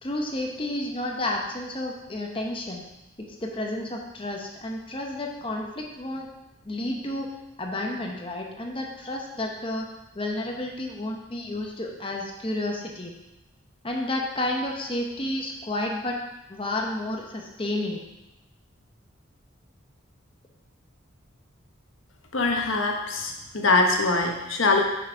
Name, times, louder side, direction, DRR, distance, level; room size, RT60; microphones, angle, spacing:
voice 1, 0.0-2.9 3.2-6.3 6.6-9.9 10.1-13.1 13.8-16.2 16.5-18.0, left 1 dB, 25° left, 1 dB, 0.9 m, -31 dB
voice 2, 22.3-24.8, left 3 dB, 75° left, 1 dB, 1.1 m, -23 dB
6.3 x 5.7 x 5.0 m, 0.95 s
head